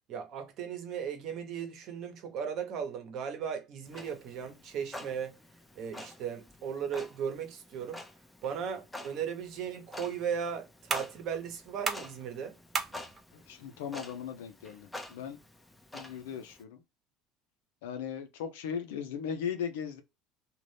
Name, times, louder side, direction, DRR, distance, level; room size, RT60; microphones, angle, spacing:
voice 1, 0.1-5.4 5.7-8.0 8.4-12.6, right 7 dB, 60° right, 1.0 m, -37 dB
Clock, 3.9-16.6, left 1 dB, 10° left, 0.6 m, -48 dB
sound 1, 9.4-16.4, right 5 dB, 40° right, 0.6 m, -41 dB
voice 2, 13.3-15.4 15.9-16.8 17.8-20.0, left 7 dB, 85° left, 0.7 m, -38 dB
2.6 x 2.5 x 3.3 m
hypercardioid pair, 80°, 0 cm